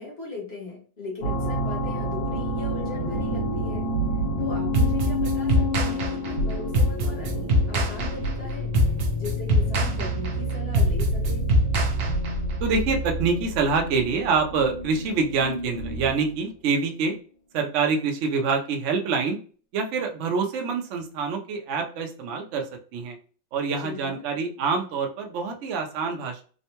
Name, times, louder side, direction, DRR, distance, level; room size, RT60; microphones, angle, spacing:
voice 1, 0.0-3.9 4.4-8.7 9.1-11.5 23.8-24.3, left 2 dB, 40° left, -3 dB, 1.1 m, -39 dB
sound 1, 1.2-16.3, equal, 85° left, 1.5 m, -29 dB
sound 2, 4.7-12.6, equal, 65° right, 1.0 m, -23 dB
voice 2, 12.6-17.2 17.5-19.4 19.7-23.2 23.5-26.4, right 4 dB, 85° right, 2 dB, 0.6 m, -26 dB
3.6 x 2.1 x 2.8 m, 0.40 s
omnidirectional pair, 2.0 m